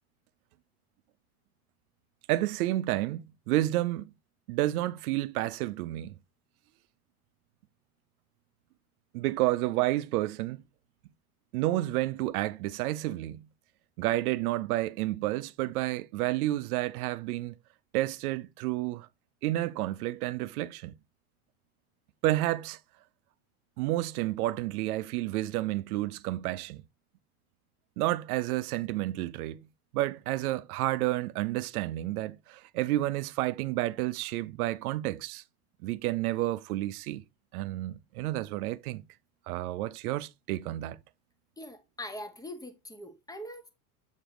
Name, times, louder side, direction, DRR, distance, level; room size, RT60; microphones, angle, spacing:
voice 1, 2.3-4.0 4.5-6.2 9.1-10.6 11.5-13.5 14.0-17.5 17.9-19.1 19.4-20.9 22.2-22.8 23.8-26.8 28.0-29.6 29.9-35.4 35.8-37.2 37.5-39.0 39.5-41.0, right 16 dB, 75° right, 0.7 m, -30 dB
voice 2, 41.6-43.7, left 1 dB, 10° left, 1.2 m, -42 dB
7.5 x 5.1 x 3.0 m
hypercardioid pair, 95°, 44 cm